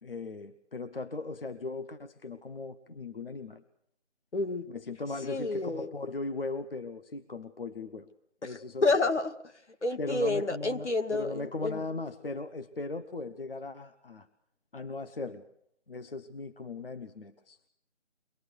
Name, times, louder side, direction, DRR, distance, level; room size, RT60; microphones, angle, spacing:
voice 1, 0.0-3.6 4.7-8.1 8.4-8.9 10.0-14.3 14.7-15.4 15.9-17.6, left 3 dB, 50° left, 10 dB, 1.1 m, -38 dB
voice 2, 4.3-4.7 5.2-5.9 8.4-9.3 9.8-11.8, left 2 dB, 70° left, 7 dB, 2.1 m, -29 dB
24.0 x 19.5 x 6.5 m, 0.73 s
figure-of-eight pair, 170°, 36 cm